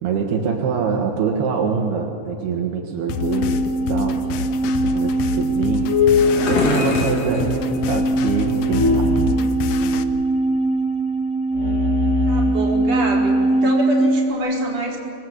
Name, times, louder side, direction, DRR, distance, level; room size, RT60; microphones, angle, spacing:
voice 1, 0.0-5.9 6.2-9.4, right 6 dB, 80° right, 2 dB, 3.6 m, -25 dB
sound 1, 3.1-10.0, left 8 dB, 85° left, 1.6 m, -30 dB
sound 2, 3.1-14.3, equal, 65° left, 0.7 m, -20 dB
sound 3, 5.4-9.0, left 4 dB, 45° left, 3.1 m, -27 dB
voice 2, 12.3-15.0, right 1 dB, 40° right, -3 dB, 5.3 m, -26 dB
25.5 x 21.0 x 8.1 m, 2.5 s
omnidirectional pair, 4.5 m